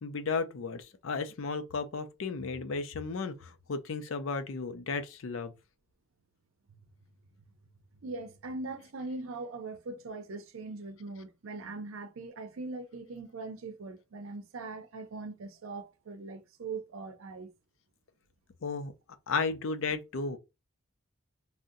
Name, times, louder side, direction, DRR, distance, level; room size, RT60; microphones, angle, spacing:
voice 1, 0.0-5.5 18.6-18.9 19.3-20.4, left 4 dB, 75° left, 0.5 m, -34 dB
voice 2, 8.0-17.5, right 3 dB, 85° right, 0.6 m, -41 dB
2.6 x 2.1 x 3.6 m
head